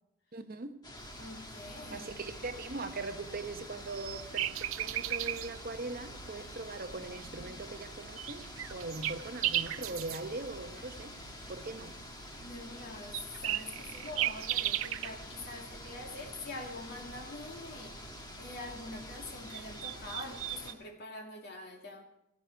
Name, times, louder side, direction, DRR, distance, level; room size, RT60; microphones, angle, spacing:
voice 1, 0.3-0.8 1.9-11.1 11.5-11.9, right 3 dB, 45° right, 0.9 m, -41 dB
sound 1, 0.8-20.7, left 2 dB, 20° left, 1.4 m, -48 dB
sound 2, 0.9-20.7, right 12 dB, 85° right, 0.5 m, -40 dB
voice 2, 1.2-2.1 7.4-7.6 9.8-10.0 12.4-17.9 18.4-22.0, left 2 dB, 55° left, 2.3 m, -45 dB
17.0 x 15.0 x 4.6 m
head